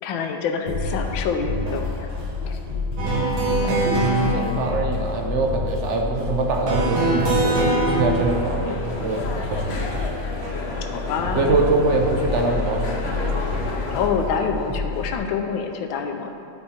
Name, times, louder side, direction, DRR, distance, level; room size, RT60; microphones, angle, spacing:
voice 1, 0.0-2.1 2.4-2.6 10.8-11.6 13.9-16.3, left 6 dB, 85° left, 4 dB, 1.4 m, -26 dB
sound 1, 0.7-15.2, left 3 dB, 45° right, 2.6 m, -29 dB
sound 2, 3.0-4.3 6.7-8.0, right 2 dB, 85° right, 2.0 m, -21 dB
voice 2, 3.6-9.7 11.4-13.7, right 3 dB, 65° right, 1 dB, 0.7 m, -24 dB
sound 3, 7.7-14.1, left 2 dB, 60° left, 0.7 m, -33 dB
11.5 x 4.4 x 4.3 m, 2.7 s
omnidirectional pair, 2.1 m